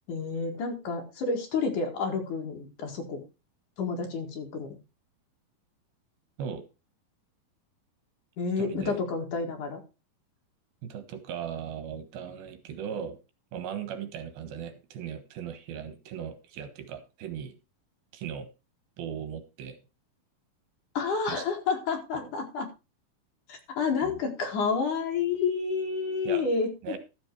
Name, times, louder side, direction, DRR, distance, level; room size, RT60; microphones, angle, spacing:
voice 1, 0.1-3.2 3.8-4.8 8.4-9.8 20.9-22.7 23.5-27.0, left 5 dB, 60° left, 3 dB, 3.2 m, -30 dB
voice 2, 8.6-9.0 10.8-13.2 13.5-17.5 18.1-18.5 19.0-19.8 21.3-21.4 22.1-22.3 24.0-24.2 26.2-26.5 26.8-27.0, right 8 dB, 75° right, 10 dB, 3.2 m, -38 dB
13.0 x 7.2 x 4.6 m, 0.29 s
omnidirectional pair, 4.3 m